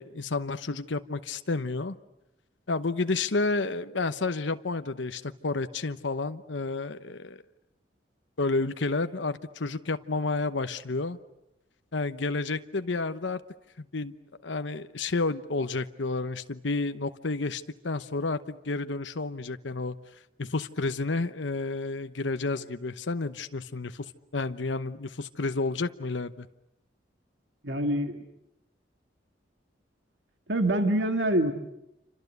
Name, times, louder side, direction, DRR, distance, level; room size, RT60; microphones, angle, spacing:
voice 1, 0.0-1.9 2.7-7.4 8.4-11.2 11.9-13.4 13.8-14.1 14.4-20.0 20.4-24.1 24.3-26.5, left 3 dB, 80° left, 10 dB, 1.0 m, -30 dB
voice 2, 27.6-28.2 30.5-31.5, right 1 dB, 70° right, 6 dB, 2.1 m, -25 dB
28.5 x 26.0 x 8.2 m, 0.86 s
head